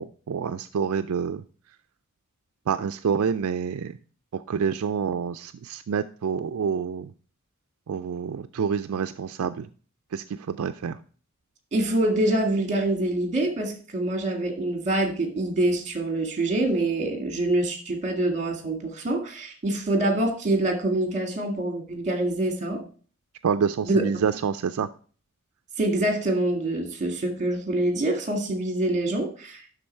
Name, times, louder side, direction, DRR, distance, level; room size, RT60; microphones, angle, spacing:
voice 1, 0.0-1.4 2.7-3.9 4.3-7.1 7.9-9.7 10.1-11.0 23.4-24.9, right 6 dB, 75° right, 10 dB, 0.4 m, -27 dB
voice 2, 11.7-22.8 23.8-24.1 25.8-29.6, right 1 dB, 35° right, 5 dB, 1.9 m, -25 dB
11.5 x 4.0 x 4.4 m, 0.40 s
head